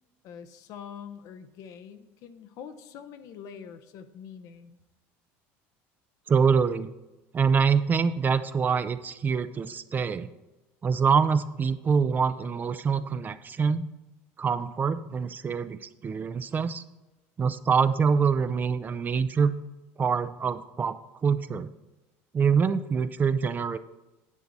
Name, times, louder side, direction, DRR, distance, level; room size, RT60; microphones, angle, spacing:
voice 1, 0.2-4.8, left 7 dB, 65° left, 10 dB, 0.8 m, -44 dB
voice 2, 6.3-6.9 7.3-10.3 10.8-13.9 14.4-16.8 17.4-19.5 20.0-21.7 22.3-23.8, right 6 dB, 30° right, 13 dB, 0.5 m, -25 dB
9.8 x 7.7 x 4.0 m, 1.0 s
supercardioid pair, 105°, 6 cm